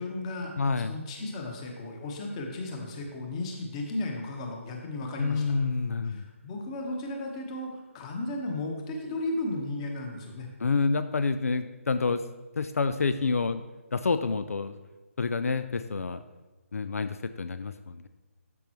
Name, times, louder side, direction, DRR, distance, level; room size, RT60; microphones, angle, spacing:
voice 1, 0.0-5.5 6.0-10.5, left 2 dB, 25° left, 2 dB, 1.2 m, -35 dB
voice 2, 0.6-0.9 5.2-6.2 10.6-12.2 12.6-13.6 13.9-14.8 15.2-16.2 16.7-18.1, left 4 dB, 80° left, 11 dB, 0.4 m, -28 dB
12.0 x 5.4 x 3.1 m, 1.2 s
hypercardioid pair, 155°, 8 cm